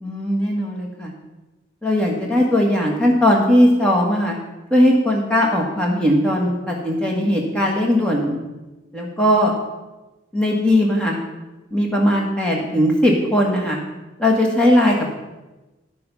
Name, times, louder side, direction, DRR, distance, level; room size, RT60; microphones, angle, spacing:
voice 1, 0.0-1.1 1.8-4.4 4.7-8.4 8.9-9.5 10.3-11.2 11.7-13.8 14.2-15.1, left 1 dB, 5° left, -2 dB, 1.7 m, -18 dB
11.5 x 7.0 x 5.4 m, 1.1 s
head